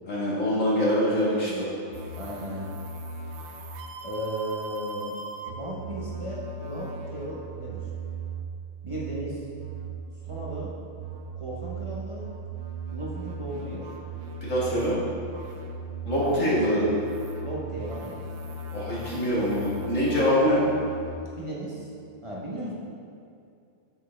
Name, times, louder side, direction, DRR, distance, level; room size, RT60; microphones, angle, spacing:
voice 1, 0.1-1.7 14.4-15.0 16.1-16.9 18.7-20.6, equal, 80° left, -8 dB, 2.2 m, -24 dB
voice 2, 1.0-1.6 2.1-2.7 4.0-7.9 8.8-9.4 10.2-10.7 11.4-12.3 12.9-13.9 16.2-16.9 17.4-18.2 21.3-21.9 22.2-22.7, right 1 dB, 25° right, -6 dB, 0.9 m, -36 dB
sound 1, 1.9-21.2, right 3 dB, 65° right, 0.9 m, -38 dB
7.7 x 6.0 x 3.4 m, 2.4 s
omnidirectional pair, 1.3 m